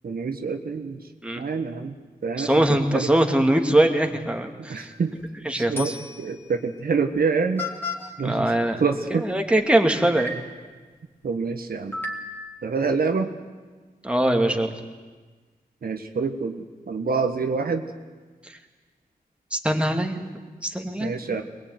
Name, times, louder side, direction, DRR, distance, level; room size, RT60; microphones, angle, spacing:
voice 1, 0.0-1.0 1.4-1.9 2.2-2.5 2.9-3.1 4.7-5.1 5.5-7.7 8.2-8.5 8.8-9.2 11.2-12.0 12.6-13.3 15.8-17.9 21.0-21.4, right 5 dB, 75° right, 5 dB, 1.6 m, -26 dB
voice 2, 2.4-4.9 5.4-6.0 8.2-8.8 9.1-10.3 14.0-14.7 18.5-18.6 19.5-20.2 20.6-21.1, right 1 dB, 5° right, 3 dB, 2.4 m, -22 dB
sound 1, 4.9-5.2 5.8-6.3 7.2-7.3 7.6-8.1 9.6-9.7 10.2-10.6 11.9-12.6, left 3 dB, 15° left, 3.2 m, -33 dB
22.5 x 20.5 x 9.5 m, 1.4 s
wide cardioid pair, 80°, 16 cm